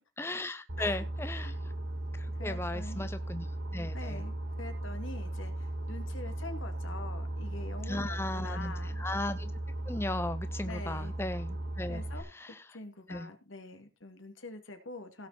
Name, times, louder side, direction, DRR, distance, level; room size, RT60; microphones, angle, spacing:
voice 1, 0.2-1.5 2.2-3.5 3.7-4.2 7.9-9.5 9.9-12.0 12.3-12.6 13.1-13.3, left 2 dB, 10° left, 11 dB, 0.6 m, -36 dB
Boat Water vehicle, 0.7-12.2, right 1 dB, 75° right, 4.1 m, -37 dB
voice 2, 2.4-3.1 3.9-9.0 10.6-11.1 11.9-12.3 12.7-15.3, left 2 dB, 85° left, 7 dB, 2.5 m, -45 dB
17.0 x 6.8 x 4.2 m, 0.28 s
head